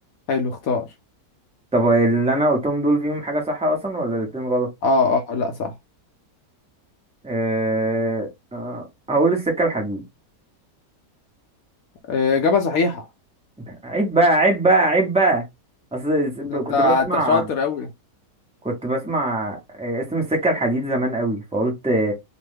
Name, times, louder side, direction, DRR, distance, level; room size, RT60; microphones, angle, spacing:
voice 1, 0.3-0.9 4.8-5.7 12.1-13.0 16.4-17.9, left 4 dB, 65° left, 0.9 m, -21 dB
voice 2, 1.7-4.7 7.2-10.0 13.7-15.4 15.9-17.4 18.6-22.1, right 2 dB, 10° right, 0.3 m, -22 dB
3.0 x 2.1 x 3.1 m
omnidirectional pair, 1.9 m